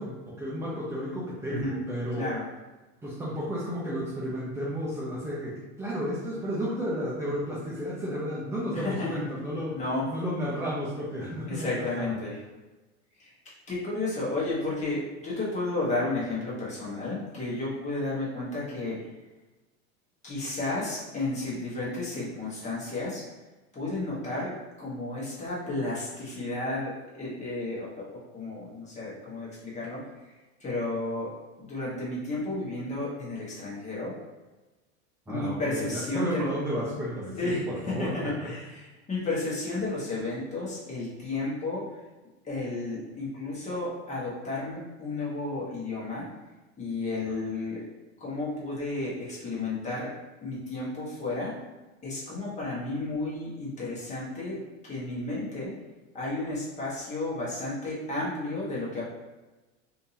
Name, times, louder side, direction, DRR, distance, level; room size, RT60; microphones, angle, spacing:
voice 1, 0.0-2.3 3.0-9.8 10.1-12.1 35.3-38.5 47.3-47.4, equal, 10° right, -8 dB, 0.5 m, -33 dB
voice 2, 1.5-1.8 2.2-2.4 8.7-9.2 9.7-10.1 11.5-12.4 13.2-13.3 13.7-19.0 20.2-23.2 23.7-30.3 30.6-31.3 31.7-34.2 35.3-36.5 37.4-41.9 42.4-46.2 46.8-47.8 48.2-50.1 50.4-51.6 52.0-54.6 54.8-55.7 56.1-59.0, left 2 dB, 20° left, -6 dB, 1.3 m, -32 dB
3.4 x 2.8 x 2.8 m, 1.1 s
supercardioid pair, 120°, 35 cm